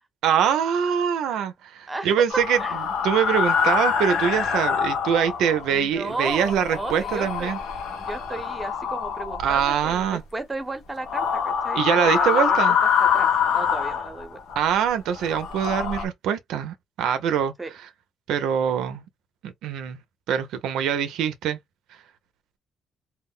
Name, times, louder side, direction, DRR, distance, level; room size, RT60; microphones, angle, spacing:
voice 1, 0.2-7.6 9.4-10.2 11.8-12.8 14.6-17.5 18.3-19.0 19.4-20.0 20.3-21.6, right 8 dB, 85° right, 0.4 m, -24 dB
voice 2, 1.9-2.8 5.7-7.5 8.0-12.6 13.0-14.4 17.6-17.7, right 2 dB, 20° right, 0.7 m, -34 dB
sound 1, 2.3-5.7 6.1-10.1 11.0-14.6 15.1-16.1, left 7 dB, 90° left, 0.7 m, -25 dB
2.1 x 2.0 x 3.5 m
cardioid pair, 90°, 0 cm